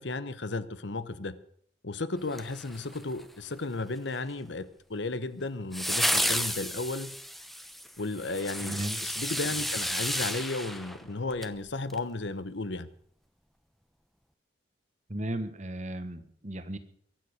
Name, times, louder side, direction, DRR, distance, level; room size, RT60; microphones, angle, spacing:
voice 1, 0.0-1.4 1.8-7.1 8.0-12.9, left 3 dB, 65° left, 14 dB, 1.0 m, -34 dB
sound 1, 2.3-3.2 5.7-11.6 11.9-12.0, equal, ahead, 0.9 m, -32 dB
voice 2, 8.6-9.0 15.1-16.8, right 1 dB, 35° right, 11 dB, 1.4 m, -35 dB
23.0 x 9.7 x 6.5 m, 0.64 s
head